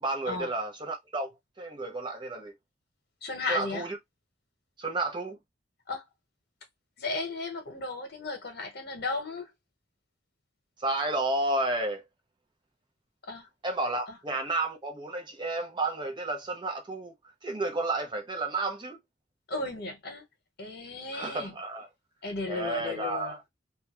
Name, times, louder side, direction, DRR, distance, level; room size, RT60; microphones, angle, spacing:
voice 1, 0.0-1.3 1.6-2.5 3.5-4.0 4.8-5.4 10.8-12.0 13.6-17.1 17.4-19.0 21.1-21.9 22.5-23.4, right 2 dB, 25° right, 0.6 m, -31 dB
voice 2, 3.2-3.8 5.9-6.0 7.0-9.5 13.3-13.5 14.1-14.2 19.5-20.2 20.6-21.5 22.2-23.4, left 3 dB, 60° left, 1.0 m, -35 dB
2.4 x 2.1 x 2.9 m
head